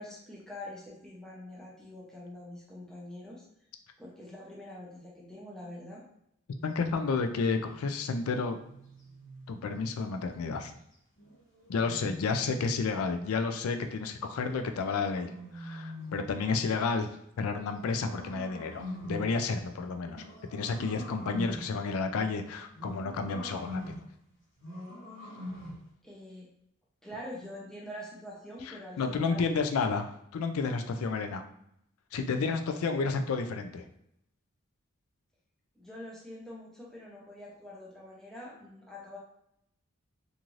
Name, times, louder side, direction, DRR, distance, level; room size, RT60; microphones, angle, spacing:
voice 1, 0.0-3.5 4.0-6.0 26.0-26.5 27.0-29.5 35.8-39.2, left 1 dB, ahead, -5 dB, 0.6 m, -45 dB
voice 2, 6.6-8.6 9.5-10.7 11.7-17.1 17.4-20.2 20.5-23.8 28.7-31.4 32.1-33.8, left 4 dB, 90° left, 7 dB, 0.4 m, -31 dB
sound 1, 7.1-9.5 11.2-12.9 14.4-16.4 17.3-19.4 20.1-21.8 22.7-24.1 24.6-25.9, left 1 dB, 55° left, 1.2 m, -44 dB
2.6 x 2.5 x 3.0 m, 0.76 s
head